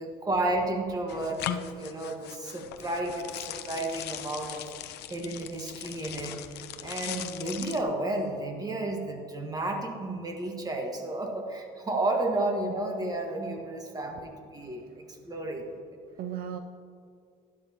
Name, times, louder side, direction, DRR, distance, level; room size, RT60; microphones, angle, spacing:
voice 1, 0.0-4.7 5.1-6.4 6.8-15.6, right 2 dB, 20° right, 2 dB, 1.6 m, -32 dB
sound 1, 1.1-7.8, left 11 dB, 80° left, 0.6 m, -39 dB
voice 2, 14.2-15.3 16.1-16.6, right 9 dB, 60° right, 7 dB, 0.5 m, -40 dB
12.0 x 11.5 x 3.0 m, 2.3 s
cardioid pair, 110°, 17 cm